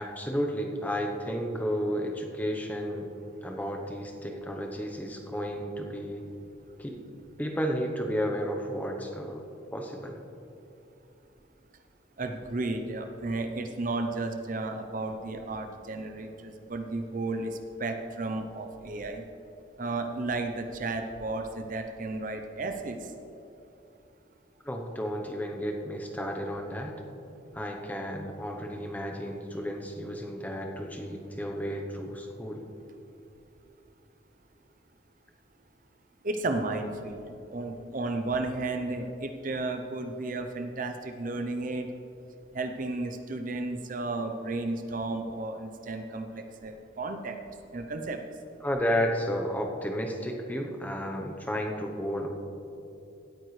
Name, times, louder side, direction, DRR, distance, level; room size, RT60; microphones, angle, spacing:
voice 1, 0.0-3.1 3.4-6.2 6.8-7.0 7.4-9.4 9.7-10.2 24.6-26.9 27.5-32.6 48.6-52.3, equal, 10° left, 2 dB, 0.8 m, -32 dB
voice 2, 12.2-19.2 19.8-23.1 36.2-41.9 42.5-47.4 47.7-48.2, right 2 dB, 45° right, 6 dB, 0.6 m, -33 dB
17.0 x 9.1 x 3.2 m, 2.8 s
head